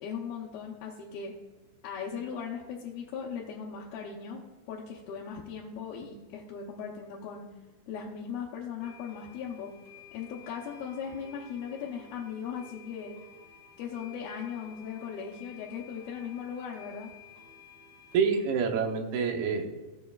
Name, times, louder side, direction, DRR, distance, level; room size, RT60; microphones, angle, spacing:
voice 1, 0.0-1.3 1.8-4.4 4.7-7.5 7.9-9.7 10.1-13.2 13.8-17.1, left 7 dB, 75° left, -4 dB, 2.6 m, -38 dB
sound 1, 8.8-18.4, left 7 dB, 50° right, 1.8 m, -53 dB
voice 2, 18.1-19.7, right 6 dB, 80° right, 4 dB, 2.8 m, -27 dB
17.5 x 7.3 x 2.3 m, 1.2 s
omnidirectional pair, 4.5 m